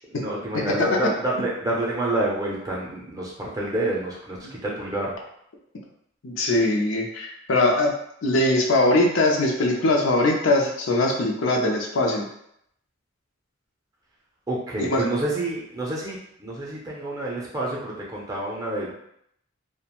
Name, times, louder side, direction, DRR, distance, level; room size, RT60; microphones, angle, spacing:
voice 1, 0.1-5.1 14.5-18.9, right 2 dB, 15° right, -4 dB, 0.5 m, -28 dB
voice 2, 6.2-7.9 8.2-12.2 14.8-15.0, left 2 dB, 70° left, 0 dB, 0.5 m, -21 dB
2.4 x 2.1 x 2.9 m, 0.74 s
head